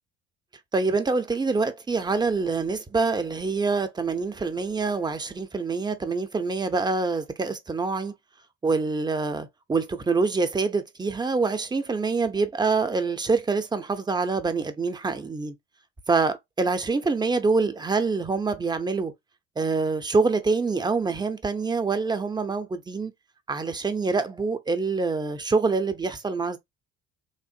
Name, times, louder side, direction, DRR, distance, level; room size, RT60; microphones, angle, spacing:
voice 1, 0.7-8.1 8.6-15.5 16.1-19.1 19.6-23.1 23.5-26.6, right 4 dB, 10° right, 0.6 m, -25 dB
3.2 x 2.4 x 2.7 m
hypercardioid pair, 55°, 36 cm